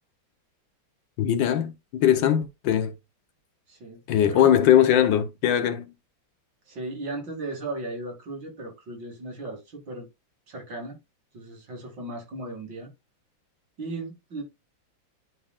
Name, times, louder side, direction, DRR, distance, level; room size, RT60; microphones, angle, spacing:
voice 1, 1.2-2.9 4.1-5.9, left 10 dB, 75° left, 1.5 m, -21 dB
voice 2, 3.7-4.6 6.7-10.1 10.5-11.0 11.3-12.9 13.8-14.4, right 2 dB, 70° right, 3.1 m, -36 dB
11.0 x 3.9 x 2.3 m
omnidirectional pair, 2.1 m